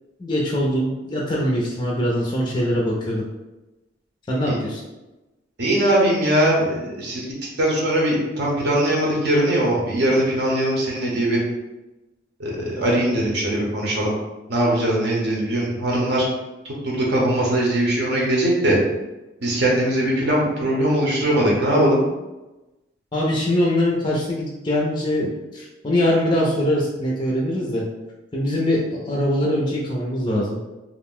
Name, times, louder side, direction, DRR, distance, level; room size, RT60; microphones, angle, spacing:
voice 1, 0.2-3.3 4.3-4.8 23.1-27.8 28.3-30.6, left 1 dB, 25° left, -3 dB, 0.4 m, -22 dB
voice 2, 5.6-11.4 12.4-14.1 14.5-16.3 16.6-18.8 19.4-22.0, right 1 dB, 60° right, -3 dB, 0.7 m, -21 dB
2.4 x 2.0 x 3.6 m, 1.1 s
head